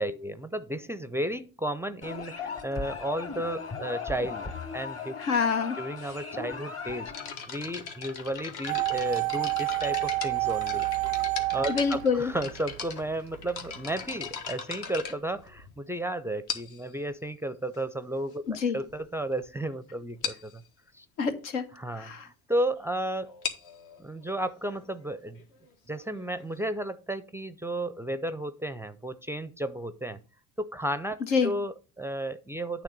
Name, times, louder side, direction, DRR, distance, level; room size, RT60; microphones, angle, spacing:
voice 1, 0.0-5.2 5.8-7.1 7.5-10.9 11.5-20.6 20.9-21.1 21.7-23.3 24.0-25.4 25.9-30.2 30.6-32.8, right 1 dB, 5° right, 13 dB, 0.4 m, -33 dB
sound 1, 2.0-7.3, left 5 dB, 35° left, 1.6 m, -38 dB
voice 2, 5.2-5.8 11.7-12.3 18.5-18.8 21.2-21.6 22.0-22.2 31.3-31.5, left 5 dB, 80° left, 8 dB, 1.1 m, -26 dB
sound 2, 7.1-15.9 16.5-16.9 17.7-17.8 18.5-18.6 18.8-19.0 19.3-19.5 19.7-19.8 20.2-20.5 23.2-26.7, left 6 dB, 65° left, 1.5 m, -39 dB
sound 3, 8.7-12.8 13.0-13.1, right 22 dB, 85° right, 0.5 m, -29 dB
9.0 x 3.4 x 6.6 m, 0.34 s
hypercardioid pair, 65°, 41 cm